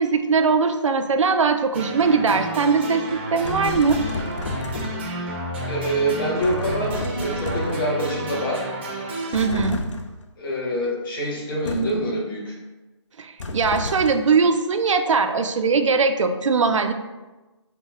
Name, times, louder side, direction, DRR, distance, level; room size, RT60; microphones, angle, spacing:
voice 1, 0.0-4.0 9.3-9.8 13.2-16.9, right 5 dB, 85° right, 7 dB, 0.4 m, -20 dB
sound 1, 1.7-9.5, right 1 dB, 20° right, 0.5 m, -31 dB
sound 2, 3.4-5.2 6.4-8.0 9.3-10.2 11.7-12.1 13.4-14.4, left 2 dB, 75° left, 0.5 m, -31 dB
voice 2, 5.7-8.7 10.4-12.5, right 1 dB, 45° left, -3 dB, 1.4 m, -25 dB
5.6 x 2.1 x 3.5 m, 1.1 s
hypercardioid pair, 165°, 16 cm